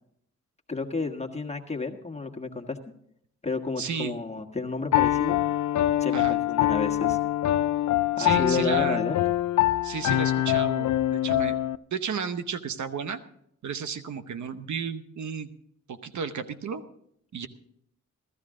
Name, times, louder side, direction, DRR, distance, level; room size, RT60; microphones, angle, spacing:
voice 1, 0.7-2.8 3.4-5.4 6.0-7.2 8.2-9.2, left 3 dB, 20° left, 3 dB, 1.4 m, -31 dB
voice 2, 3.8-4.1 6.1-6.4 8.2-9.0 9.8-11.5 11.9-13.2 13.6-15.5 15.9-16.8 17.3-17.5, right 6 dB, 65° right, 10 dB, 0.9 m, -33 dB
Piano, 4.9-11.8, left 13 dB, 70° left, 0.5 m, -24 dB
15.5 x 13.0 x 3.7 m, 0.71 s
cardioid pair, 65°, 31 cm